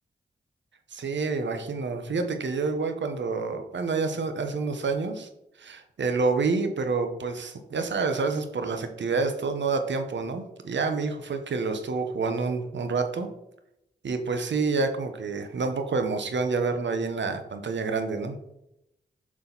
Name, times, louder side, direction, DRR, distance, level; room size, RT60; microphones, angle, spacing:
voice 1, 0.9-5.3 5.6-13.3 14.0-18.4, right 4 dB, 75° right, 7 dB, 1.2 m, -28 dB
7.4 x 6.4 x 4.1 m, 0.83 s
cardioid pair, 65°, 19 cm